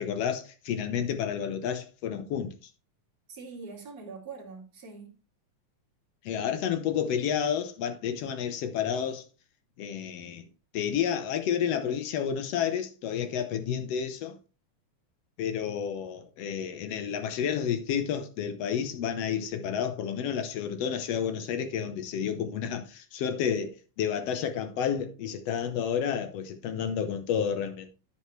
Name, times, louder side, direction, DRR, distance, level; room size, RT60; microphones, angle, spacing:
voice 1, 0.0-2.7 6.2-9.2 9.8-10.5 10.7-14.4 15.4-27.9, left 8 dB, 85° left, 1.4 m, -30 dB
voice 2, 3.3-5.1, right 4 dB, 30° right, 2.7 m, -43 dB
10.0 x 7.9 x 3.2 m
omnidirectional pair, 4.1 m